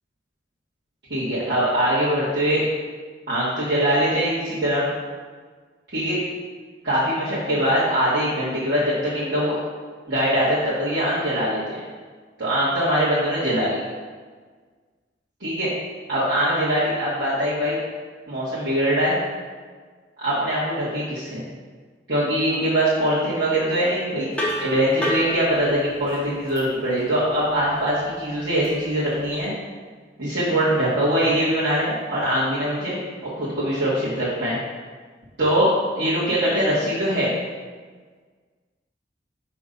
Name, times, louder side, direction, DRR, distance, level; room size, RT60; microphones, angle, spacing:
voice 1, 1.1-2.6 3.3-4.8 5.9-6.2 6.8-9.6 10.1-11.8 12.4-13.8 15.4-15.7 16.1-17.8 18.3-19.2 20.2-21.4 22.1-24.3 24.6-29.5 30.2-33.0 33.4-34.6 35.4-37.3, equal, 65° right, -12 dB, 1.6 m, -22 dB
sound 1, 24.3-29.5, equal, 5° left, 0.8 m, -32 dB
5.4 x 3.4 x 5.1 m, 1.5 s
head